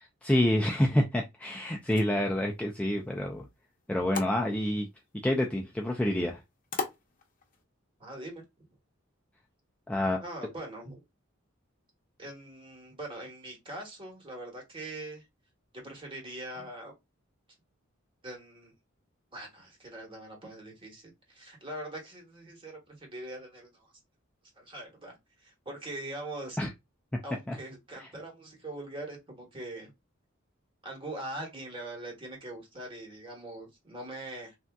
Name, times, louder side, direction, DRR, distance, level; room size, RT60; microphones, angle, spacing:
voice 1, 0.2-3.5 3.9-4.9 5.2-6.4 9.9-10.2 26.6-26.7 27.5-27.6 28.0-28.1, left 1 dB, 5° left, 0.3 m, -27 dB
sound 1, 1.7-7.6, left 5 dB, 40° left, 0.7 m, -43 dB
voice 2, 8.0-8.4 10.2-11.0 12.2-15.3 15.8-16.9 18.2-18.7 19.3-23.9 24.6-26.6 27.2-29.9 30.8-34.6, right 1 dB, 25° right, 1.2 m, -42 dB
3.5 x 2.6 x 2.2 m
head